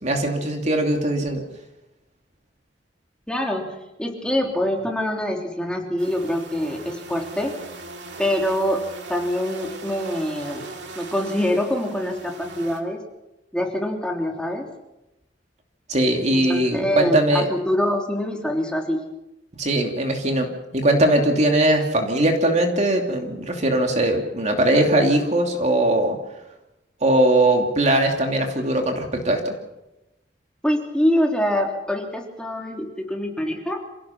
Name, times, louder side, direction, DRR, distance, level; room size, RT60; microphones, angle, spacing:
voice 1, 0.0-1.4 15.9-17.4 19.6-20.5 20.7-26.2 27.0-29.5, right 1 dB, 40° right, 3 dB, 2.8 m, -20 dB
voice 2, 3.3-7.5 8.2-8.8 9.1-10.7 10.9-13.0 13.5-14.7 16.3-19.1 30.6-33.8, left 1 dB, 5° left, 0 dB, 3.3 m, -25 dB
sound 1, 6.0-12.8, right 3 dB, 70° right, 2.7 m, -39 dB
27.0 x 17.5 x 5.9 m, 0.94 s
head